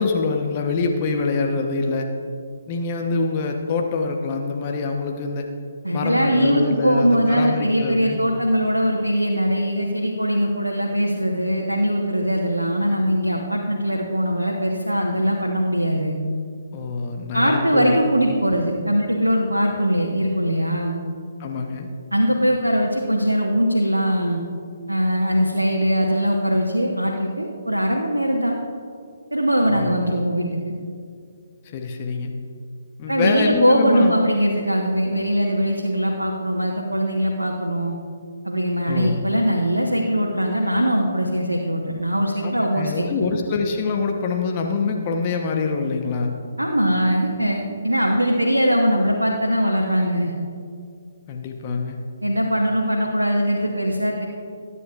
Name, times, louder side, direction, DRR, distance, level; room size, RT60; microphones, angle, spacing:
voice 1, 0.0-2.1 2.7-5.5 5.9-8.2 16.7-18.0 21.4-21.9 29.7-30.0 31.6-32.3 33.0-34.1 38.9-39.2 42.4-46.3 51.3-52.0, left 4 dB, 30° left, 2 dB, 0.9 m, -25 dB
voice 2, 5.8-16.1 17.3-21.0 22.1-24.4 24.9-28.5 29.3-30.7 33.1-37.9 38.4-43.1 46.6-50.3 52.2-54.2, equal, 85° right, 0 dB, 1.2 m, -21 dB
21.0 x 9.8 x 2.4 m, 2.3 s
figure-of-eight pair, 135°, 0 cm